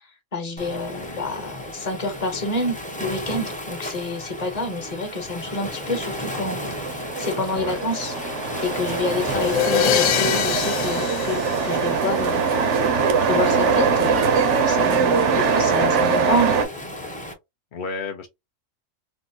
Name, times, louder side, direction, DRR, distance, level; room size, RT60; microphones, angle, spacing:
voice 1, 0.3-6.6 7.2-8.1 8.6-12.5 13.2-14.3 14.7-16.6, left 2 dB, 35° left, 0.8 m, -28 dB
Waves surf, 0.6-17.3, left 1 dB, 10° left, 0.4 m, -33 dB
voice 2, 0.9-1.3 7.5-7.8 15.3-15.7 17.7-18.3, left 4 dB, 65° left, 0.5 m, -34 dB
sound 1, 5.7-16.7, right 5 dB, 70° right, 0.9 m, -22 dB
sound 2, 9.3-12.3, left 9 dB, 80° left, 0.9 m, -24 dB
3.6 x 2.0 x 2.7 m
omnidirectional pair, 1.4 m